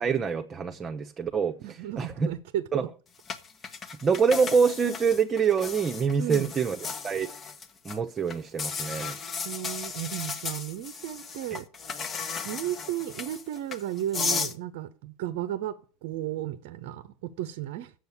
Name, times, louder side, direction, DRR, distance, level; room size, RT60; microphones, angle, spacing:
voice 1, 0.0-2.3 2.7-2.8 4.0-7.3 7.8-9.2, right 6 dB, 30° right, 0.9 m, -26 dB
voice 2, 1.6-2.9 6.2-6.5 9.4-11.7 12.4-17.9, right 12 dB, 65° right, 0.7 m, -34 dB
sound 1, 3.3-8.0 8.3-14.5, left 5 dB, 35° left, 1.3 m, -35 dB
7.9 x 6.9 x 8.2 m
figure-of-eight pair, 70°, 0 cm